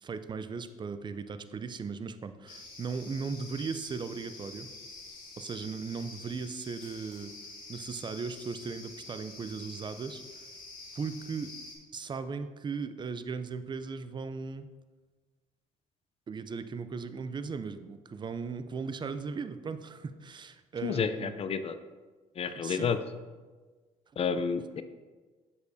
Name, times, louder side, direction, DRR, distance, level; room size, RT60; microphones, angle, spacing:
voice 1, 0.0-4.7 5.4-7.3 7.7-10.2 10.9-11.5 11.9-14.7 16.3-21.5 22.5-22.9, right 5 dB, 30° right, 11 dB, 0.5 m, -37 dB
sound 1, 2.5-11.7, left 3 dB, 70° left, 1.7 m, -47 dB
voice 2, 20.8-21.8 22.4-23.0 24.2-24.8, left 6 dB, 40° left, 10 dB, 0.5 m, -30 dB
6.9 x 6.7 x 2.7 m, 1.3 s
supercardioid pair, 75°, 15 cm